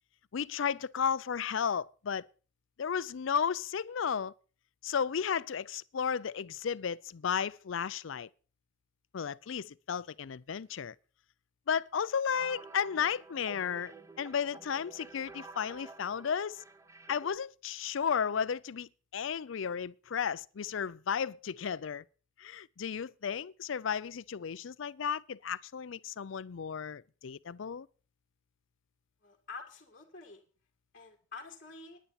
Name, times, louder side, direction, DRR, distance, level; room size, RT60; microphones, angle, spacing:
voice 1, 0.3-2.3 2.8-4.3 4.8-8.3 9.1-10.9 11.7-16.6 17.1-22.0 22.4-27.9, left 7 dB, 70° left, 0.5 m, -34 dB
sound 1, 12.3-17.4, right 3 dB, 15° right, 0.7 m, -51 dB
voice 2, 29.2-30.4 30.9-32.0, left 4 dB, 40° left, 1.8 m, -48 dB
10.5 x 10.0 x 5.8 m
head